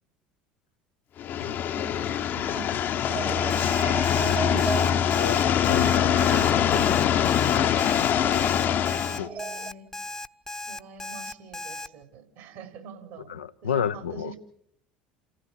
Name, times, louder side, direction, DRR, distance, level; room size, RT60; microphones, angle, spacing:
sound 1, 1.2-9.2, left 9 dB, 50° left, 1.0 m, -23 dB
voice 1, 1.7-3.3 4.5-5.1 6.3-7.7 8.3-8.6 9.1-9.9 10.7-13.4 13.6-14.4, right 6 dB, 65° right, 3.8 m, -45 dB
sound 2, 3.1-9.7, right 6 dB, 40° right, 1.3 m, -36 dB
Alarm, 3.5-11.9, left 2 dB, 10° left, 0.9 m, -36 dB
voice 2, 4.2-6.5 7.5-7.8 9.2-9.3 13.3-14.3, left 7 dB, 85° left, 0.7 m, -32 dB
29.0 x 15.5 x 5.9 m
hypercardioid pair, 70°, 5 cm